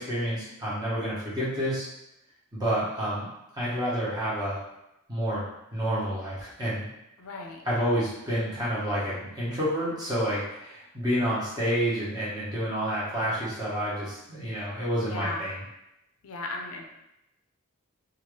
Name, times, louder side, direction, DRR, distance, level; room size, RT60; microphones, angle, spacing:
voice 1, 0.0-1.9 2.5-3.3 3.5-4.6 5.1-5.4 5.7-6.8 7.6-15.6, equal, 20° right, -9 dB, 1.1 m, -29 dB
voice 2, 7.2-7.6 15.0-15.5 16.2-16.8, left 2 dB, 70° left, 1 dB, 0.5 m, -36 dB
2.8 x 2.4 x 3.1 m, 0.88 s
head